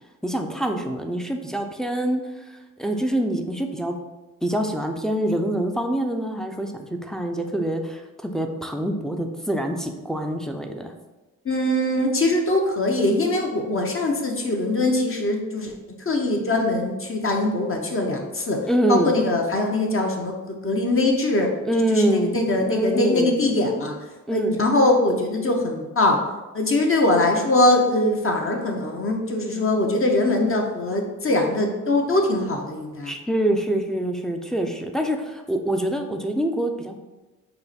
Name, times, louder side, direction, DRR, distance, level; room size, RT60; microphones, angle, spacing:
voice 1, 0.2-3.9 4.4-10.9 18.7-19.2 21.7-22.3 22.7-23.4 24.3-24.6 33.0-37.0, right 1 dB, ahead, 3 dB, 0.4 m, -25 dB
voice 2, 11.4-15.7 16.1-18.6 18.9-20.3 20.6-21.5 21.9-23.9 24.3-26.2 26.5-33.1, left 2 dB, 40° left, 1 dB, 0.8 m, -22 dB
5.5 x 2.2 x 4.1 m, 1.1 s
cardioid pair, 80°, 33 cm